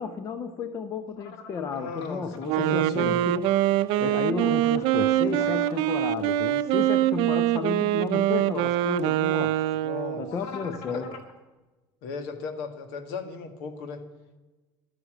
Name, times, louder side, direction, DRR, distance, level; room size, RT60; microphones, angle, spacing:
voice 1, 0.0-3.4 4.0-9.6 10.2-11.1, left 5 dB, 30° left, 10 dB, 0.7 m, -33 dB
sound 1, 1.2-2.7 4.3-6.1 10.2-11.3, left 4 dB, 60° left, 2.0 m, -44 dB
voice 2, 1.7-2.3 2.5-3.2 9.8-10.2 10.6-11.1 12.0-14.0, left 4 dB, 75° left, 8 dB, 1.9 m, -36 dB
Wind instrument woodwind instrument, 2.4-10.4, right 13 dB, 60° right, 0.6 m, -24 dB
12.0 x 9.9 x 7.6 m, 1.2 s
cardioid pair, 165°, 10 cm